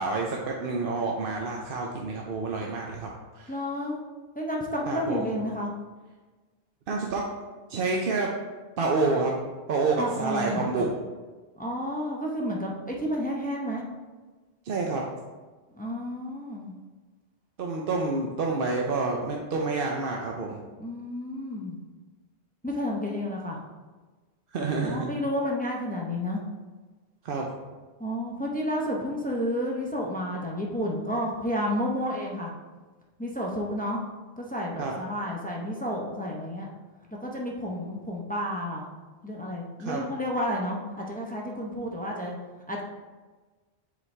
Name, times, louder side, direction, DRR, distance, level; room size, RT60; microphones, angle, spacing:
voice 1, 0.0-3.5 4.9-5.3 6.9-7.2 7.7-8.3 8.8-9.4 9.7-10.9 14.6-15.0 17.6-20.6 24.5-25.1 27.2-27.5 34.8-35.0 39.8-40.0, right 3 dB, 60° right, 0 dB, 0.8 m, -28 dB
voice 2, 3.5-4.0 4.3-5.7 10.0-10.9 11.6-13.8 15.7-16.7 20.8-21.8 22.6-23.6 24.8-26.4 28.0-32.5 33.2-34.0 34.4-36.7 37.2-38.8 39.2-42.4 42.7-42.8, equal, 10° left, -2 dB, 0.6 m, -31 dB
7.1 x 4.1 x 3.3 m, 1.3 s
omnidirectional pair, 1.1 m